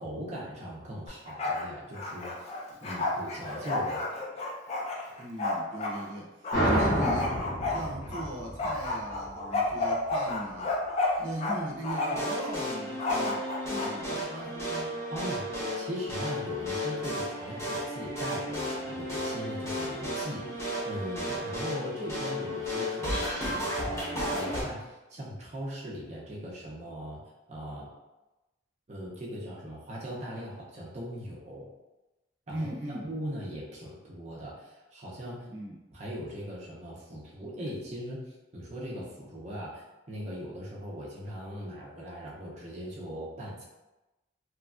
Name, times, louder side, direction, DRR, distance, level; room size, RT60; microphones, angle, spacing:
voice 1, 0.0-2.5 2.8-4.1 15.1-15.5 15.7-27.2 27.5-27.9 28.9-31.7 32.5-35.5 35.9-43.6, equal, 35° right, -5 dB, 0.6 m, -39 dB
Bark, 1.1-1.7 1.9-6.0 6.4-8.2 8.6-11.6 11.8-12.3 13.0-13.9, left 2 dB, 35° left, 0.3 m, -31 dB
voice 2, 5.2-10.7 11.2-15.0 32.5-33.1 35.5-35.8, right 1 dB, 80° right, -2 dB, 0.6 m, -38 dB
sound 1, 6.5-9.8, right 1 dB, 50° left, 0.9 m, -29 dB
sound 2, 11.9-24.6, left 1 dB, 15° left, 0.7 m, -33 dB
3.0 x 2.3 x 2.4 m, 1.0 s
head